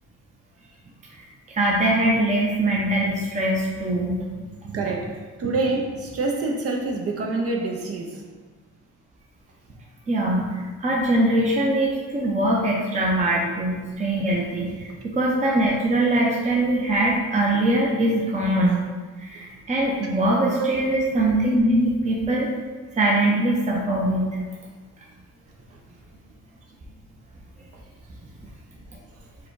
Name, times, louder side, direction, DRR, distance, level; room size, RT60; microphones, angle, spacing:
voice 1, 1.1-4.3 10.1-18.8 19.2-22.5 22.9-24.4, right 1 dB, 25° right, -3 dB, 0.8 m, -22 dB
voice 2, 4.4-8.2 14.8-14.9 20.6-20.8, right 3 dB, 50° right, 0 dB, 0.8 m, -27 dB
4.8 x 2.3 x 4.7 m, 1.4 s
cardioid pair, 90°, 30 cm